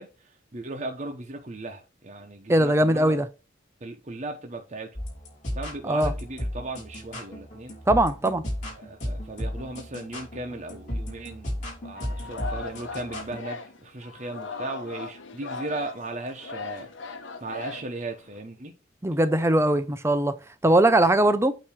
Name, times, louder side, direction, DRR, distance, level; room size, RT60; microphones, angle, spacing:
voice 1, 0.0-3.2 3.8-4.9 5.5-7.7 8.7-11.5 11.8-16.9 17.4-18.7, right 2 dB, 40° right, 0.9 m, -37 dB
voice 2, 2.5-3.3 5.9-6.1 7.9-8.4 19.0-21.6, right 1 dB, 15° right, 0.5 m, -21 dB
sound 1, 5.0-13.4, equal, 40° left, 3.2 m, -34 dB
Singing, 12.0-18.4, left 4 dB, 90° left, 1.0 m, -38 dB
8.7 x 3.0 x 6.0 m
head